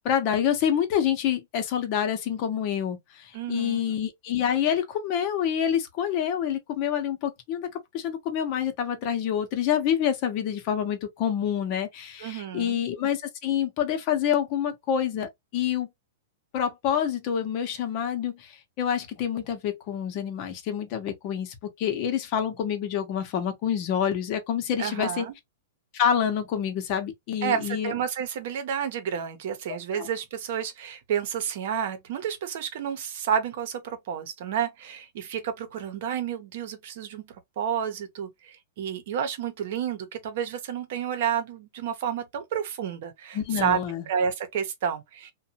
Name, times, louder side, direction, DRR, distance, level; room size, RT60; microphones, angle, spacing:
voice 1, 0.0-15.9 16.5-25.3 25.9-27.9 29.9-30.1 43.3-44.1, left 9 dB, 40° left, 0.8 m, -27 dB
voice 2, 3.3-3.8 12.2-12.8 24.8-25.3 27.4-43.8 44.1-45.3, right 8 dB, 60° right, 0.8 m, -30 dB
2.6 x 2.2 x 2.8 m
hypercardioid pair, 140°, 0 cm